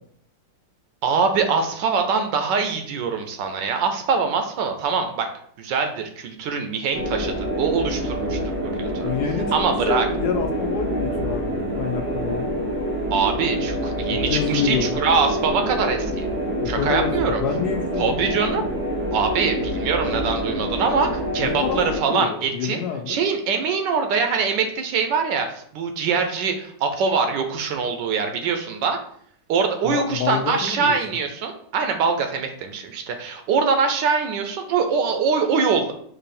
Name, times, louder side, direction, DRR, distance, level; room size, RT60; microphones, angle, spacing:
voice 1, 1.0-5.3 5.6-9.1 9.5-10.1 13.1-16.3 16.7-17.4 18.0-18.6 19.1-22.8 23.1-29.0 29.5-35.9, right 5 dB, 75° right, 6 dB, 1.3 m, -23 dB
sound 1, 6.9-22.0, right 1 dB, 20° right, 0.3 m, -26 dB
voice 2, 9.0-9.5 9.8-12.5 14.1-15.0 16.6-18.7 21.4-23.2 29.8-31.0, left 7 dB, 75° left, 4 dB, 1.0 m, -27 dB
4.7 x 2.7 x 4.2 m, 0.63 s
omnidirectional pair, 2.0 m